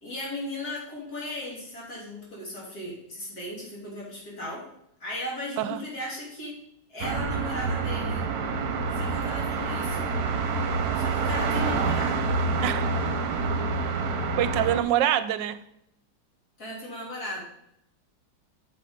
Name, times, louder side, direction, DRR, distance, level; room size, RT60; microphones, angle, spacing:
voice 1, 0.0-4.7 5.0-6.6 6.9-8.2 8.9-10.1 10.9-12.3 12.5-12.8 16.6-17.4, left 1 dB, 55° left, -4 dB, 3.7 m, -36 dB
sound 1, 7.0-14.8, right 4 dB, 60° right, 1.3 m, -27 dB
voice 2, 14.4-15.6, right 11 dB, 85° right, 13 dB, 1.3 m, -25 dB
8.6 x 6.4 x 5.2 m, 0.77 s
omnidirectional pair, 2.0 m